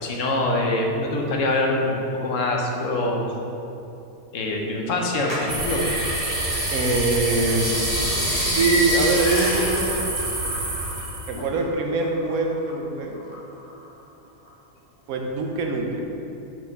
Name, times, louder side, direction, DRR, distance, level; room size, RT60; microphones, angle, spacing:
voice 1, 0.0-3.3 4.3-5.8 11.4-11.5, left 2 dB, 60° left, 0 dB, 1.2 m, -24 dB
sound 1, 5.3-11.1 11.4-12.7 13.2-14.0 14.5-14.6, equal, 20° left, 1.3 m, -28 dB
sound 2, 5.5-11.4, right 2 dB, 35° right, 0.9 m, -28 dB
voice 2, 6.7-7.8 8.4-10.1 11.3-13.2 15.1-16.1, right 3 dB, 75° right, 1 dB, 1.2 m, -24 dB
Gunshot gunfire, 9.3-10.5, left 3 dB, 85° left, 0.4 m, -38 dB
5.9 x 4.7 x 5.3 m, 2.8 s
omnidirectional pair, 1.5 m